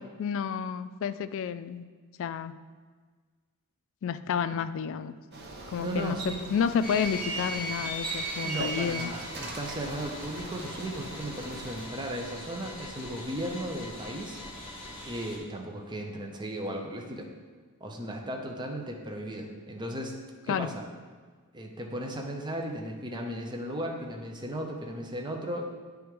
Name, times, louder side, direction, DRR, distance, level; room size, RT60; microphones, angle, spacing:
voice 1, 0.2-1.8 2.2-2.5 4.0-5.1 5.7-9.1 20.5-20.7, left 7 dB, 60° left, 12 dB, 0.3 m, -30 dB
Bicycle, 5.3-11.9, right 2 dB, 50° right, 0.8 m, -42 dB
voice 2, 5.8-6.4 8.0-8.1 8.4-14.4 15.0-17.3 17.8-20.2 20.4-20.8 21.5-25.7, right 1 dB, 20° right, 1 dB, 0.6 m, -36 dB
sound 1, 6.8-15.4, right 1 dB, 25° left, 1.3 m, -39 dB
9.2 x 3.5 x 4.7 m, 1.5 s
head